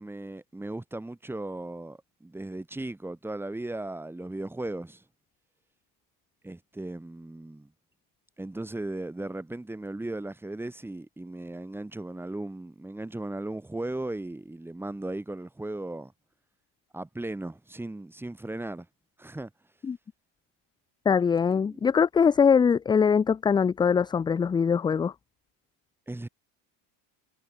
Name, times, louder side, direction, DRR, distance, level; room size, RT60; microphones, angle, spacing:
voice 1, 0.0-5.0 6.4-7.7 8.4-16.1 16.9-18.9 19.2-19.5 21.5-21.8 26.1-26.3, right 2 dB, 5° right, 1.6 m, -37 dB
voice 2, 21.1-25.1, left 6 dB, 10° left, 0.3 m, -22 dB
cardioid pair, 150°, 43 cm